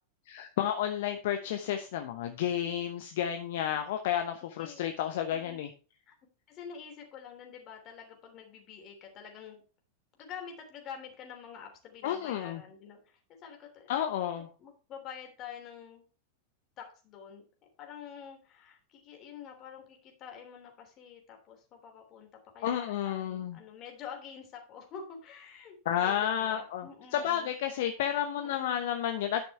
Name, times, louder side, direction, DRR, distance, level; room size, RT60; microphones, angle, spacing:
voice 1, 0.3-5.7 12.0-12.6 13.9-14.5 22.6-23.6 25.8-29.4, left 10 dB, 55° left, 6 dB, 1.0 m, -31 dB
voice 2, 5.3-5.6 6.1-6.2 6.5-9.6 10.2-14.1 14.6-16.0 16.8-17.5 17.8-27.6 28.3-29.1, left 7 dB, 35° left, 2 dB, 3.3 m, -47 dB
11.0 x 5.9 x 4.4 m, 0.35 s
figure-of-eight pair, 90°, 0 cm